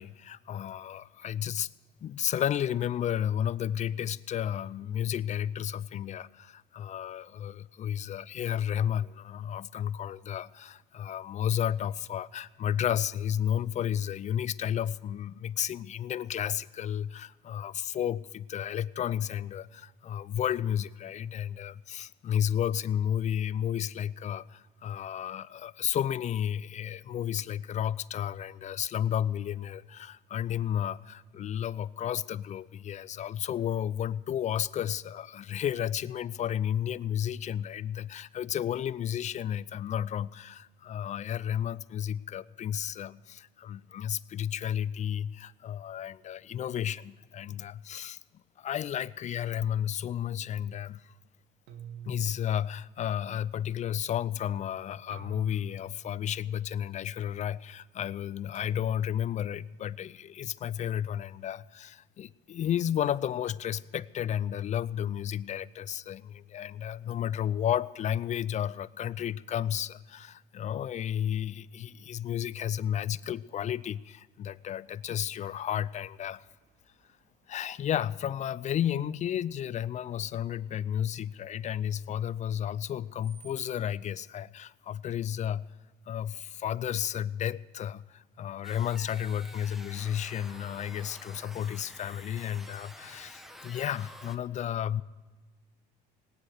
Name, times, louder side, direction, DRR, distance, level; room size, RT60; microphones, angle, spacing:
voice 1, 0.0-1.7 2.0-48.2 48.6-51.1 52.1-76.4 77.5-85.6 86.1-95.0, left 10 dB, 40° left, 18 dB, 0.4 m, -32 dB
sound 1, 51.7-53.4 55.1-56.5 58.5-59.0, right 8 dB, 90° right, 1.4 m, -49 dB
Screech, 74.4-83.7, right 5 dB, 60° right, 2.9 m, -65 dB
sound 2, 88.6-94.4, equal, ahead, 1.2 m, -49 dB
18.5 x 9.4 x 6.5 m, 1.3 s
supercardioid pair, 90°, 18 cm